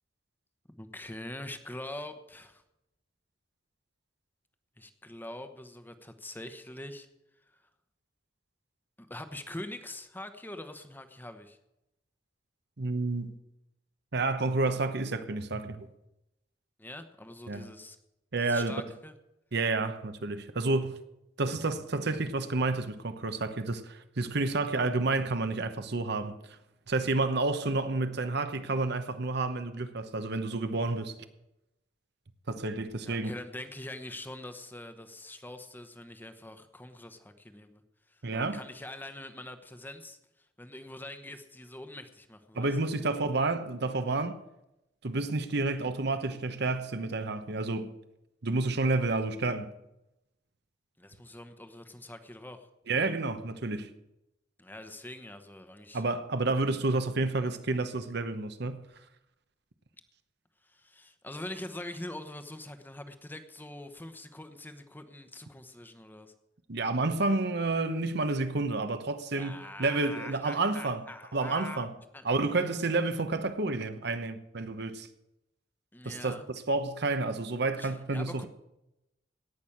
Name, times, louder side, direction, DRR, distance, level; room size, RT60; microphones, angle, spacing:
voice 1, 0.8-2.6 4.8-7.1 7.5-7.6 9.0-11.6 16.8-18.0 18.4-19.1 33.0-37.8 38.1-42.9 51.0-52.7 54.6-56.0 60.6-66.3 69.3-71.9 72.1-72.3 75.9-76.5 77.8-78.5, left 1 dB, 10° left, 1.0 m, -44 dB
voice 2, 12.8-13.3 14.1-15.9 17.5-17.7 18.3-18.7 19.5-21.0 21.4-26.3 26.9-31.1 32.5-33.3 38.2-38.6 42.5-44.4 45.0-47.9 48.4-49.7 52.9-53.9 55.9-58.9 66.7-71.0 71.3-71.9 72.2-75.1 76.0-76.4 76.7-78.5, right 3 dB, 60° right, 1.0 m, -30 dB
17.5 x 6.2 x 8.6 m
head